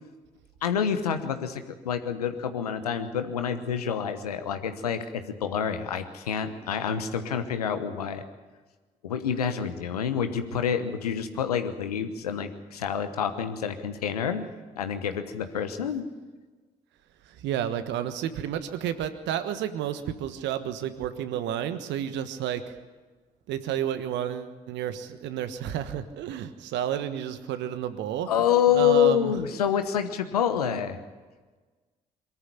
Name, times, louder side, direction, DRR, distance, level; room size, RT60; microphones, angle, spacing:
voice 1, 0.6-8.2 9.0-14.4 14.8-16.1 28.3-31.0, left 8 dB, 90° left, 9 dB, 1.1 m, -27 dB
voice 2, 17.4-22.7 23.5-28.3 28.7-29.3, right 10 dB, 70° right, 11 dB, 1.4 m, -31 dB
22.5 x 13.5 x 9.9 m, 1.3 s
hypercardioid pair, 40°, 19 cm